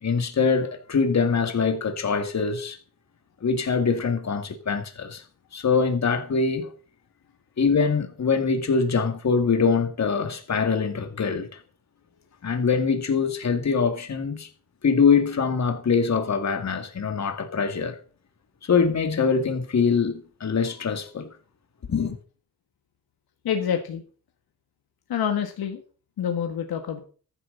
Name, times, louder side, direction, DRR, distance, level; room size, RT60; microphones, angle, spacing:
voice 1, 0.0-2.8 3.4-5.2 5.5-6.7 7.6-11.6 12.4-14.5 14.8-18.0 18.6-21.3 21.9-22.2, left 5 dB, 45° left, 2.1 m, -23 dB
voice 2, 23.4-24.0 25.1-25.8 26.2-27.0, left 8 dB, 80° left, 1.8 m, -27 dB
14.0 x 10.5 x 4.0 m
cardioid pair, 105°, 37 cm